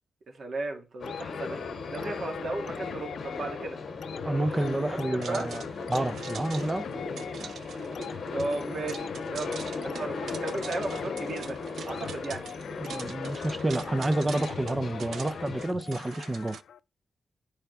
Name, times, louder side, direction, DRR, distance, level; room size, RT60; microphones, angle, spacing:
voice 1, 0.3-1.6 1.9-3.8 4.2-5.5 8.3-11.6 11.9-12.5, right 3 dB, 45° right, 2.3 m, -35 dB
sound 1, 1.0-15.7, left 4 dB, 50° left, 2.7 m, -37 dB
sound 2, 1.1-16.8, left 8 dB, 75° left, 0.4 m, -43 dB
voice 2, 4.2-5.6 5.9-6.9 12.8-16.6, right 2 dB, 15° right, 0.5 m, -29 dB
sound 3, 5.2-16.6, right 7 dB, 65° right, 0.6 m, -45 dB
13.5 x 4.7 x 3.4 m
wide cardioid pair, 180°, 0 cm